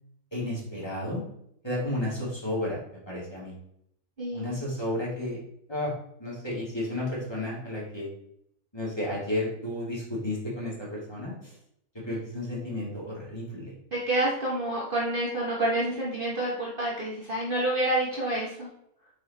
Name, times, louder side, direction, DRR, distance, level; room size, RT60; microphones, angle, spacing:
voice 1, 0.3-1.2 1.6-3.6 4.3-5.4 5.7-5.9 6.2-8.1 8.7-11.5 12.0-13.7, left 1 dB, 15° left, -6 dB, 2.3 m, -32 dB
voice 2, 4.2-4.6 12.1-12.2 13.9-18.7, right 1 dB, 35° right, -5 dB, 1.4 m, -28 dB
4.9 x 4.8 x 4.1 m, 0.73 s
omnidirectional pair, 1.6 m